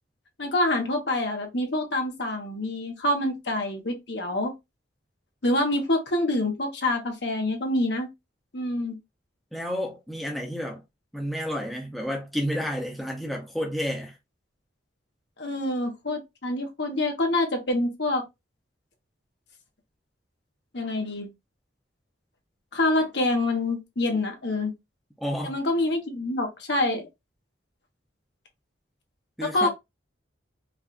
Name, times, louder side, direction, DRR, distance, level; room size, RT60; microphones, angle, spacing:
voice 1, 0.4-4.5 5.4-8.1 8.5-9.0 15.4-18.2 20.7-21.3 22.7-24.7 25.4-27.1 29.4-29.7, left 1 dB, 65° left, 1.2 m, -26 dB
voice 2, 9.5-10.8 11.1-14.2 25.2-25.5 29.4-29.7, equal, ahead, 0.7 m, -30 dB
4.8 x 2.4 x 2.5 m
head